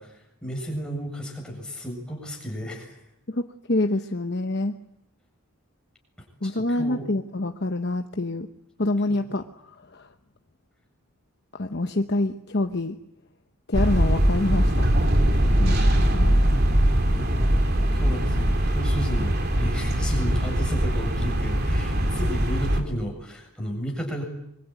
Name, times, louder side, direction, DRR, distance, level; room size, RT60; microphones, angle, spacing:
voice 1, 0.0-3.0 6.4-7.0 16.8-17.5 17.9-24.2, equal, 5° left, 0 dB, 7.5 m, -33 dB
voice 2, 3.3-4.7 6.4-8.5 8.8-10.1 11.5-13.0 13.7-14.9 15.6-16.3, left 2 dB, 50° left, 6 dB, 1.0 m, -26 dB
sound 1, 13.7-22.8, equal, 45° right, 3.1 m, -21 dB
25.5 x 23.5 x 9.5 m, 0.77 s
head